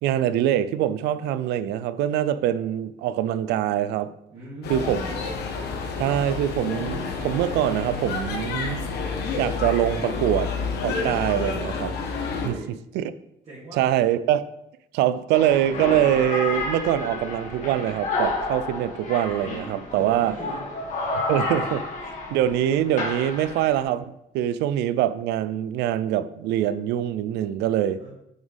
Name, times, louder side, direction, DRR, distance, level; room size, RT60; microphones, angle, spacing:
voice 1, 0.0-4.1 4.7-5.0 6.0-8.9 9.4-10.5 10.8-12.0 12.4-12.5 12.9-13.1 13.8-14.4 14.9-20.3 21.1-21.8 22.3-24.0 24.3-28.0, right 11 dB, 85° right, 0.5 m, -24 dB
voice 2, 4.3-5.2 12.4-12.8 13.4-13.9 19.9-20.6 28.0-28.1, right 2 dB, 40° right, 2.8 m, -40 dB
sound 1, 4.6-12.5, left 4 dB, 75° left, 1.3 m, -29 dB
sound 2, 15.3-23.8, left 2 dB, 45° left, 2.2 m, -30 dB
7.1 x 6.4 x 3.5 m
cardioid pair, 110°, 17 cm